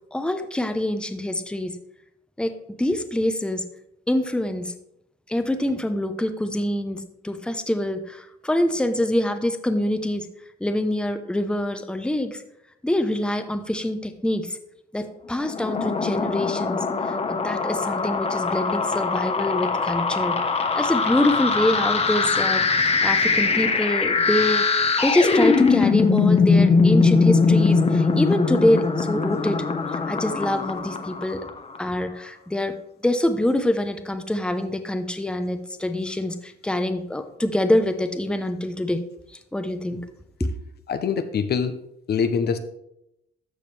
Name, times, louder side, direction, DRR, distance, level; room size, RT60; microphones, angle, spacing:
voice 1, 0.1-1.8 2.4-3.7 4.1-4.7 5.3-10.3 10.6-12.4 12.8-14.6 14.9-20.4 20.8-29.6 30.1-31.4 31.8-32.8 33.0-39.0 39.5-40.0 40.4-40.5, left 1 dB, 5° left, 8 dB, 0.8 m, -25 dB
sound 1, 15.4-31.8, left 4 dB, 30° left, 1.0 m, -21 dB
voice 2, 40.9-41.7 42.1-42.6, left 6 dB, 55° left, 10 dB, 0.7 m, -23 dB
13.5 x 5.0 x 3.3 m, 0.79 s
cardioid pair, 90°, 20 cm